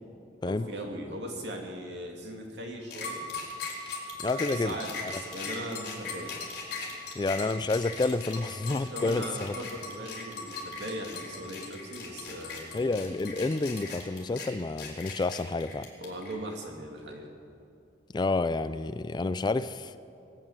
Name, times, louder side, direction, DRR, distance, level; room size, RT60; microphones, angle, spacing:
voice 1, 0.4-3.3 4.3-6.3 8.8-12.7 15.9-17.3, right 1 dB, 70° right, 1 dB, 2.5 m, -39 dB
sound 1, 2.9-16.3, left 4 dB, 55° left, 3.9 m, -39 dB
voice 2, 4.2-4.7 7.2-9.5 12.7-15.9 18.1-20.0, left 3 dB, 25° left, 14 dB, 0.3 m, -29 dB
22.0 x 8.9 x 7.3 m, 2.6 s
head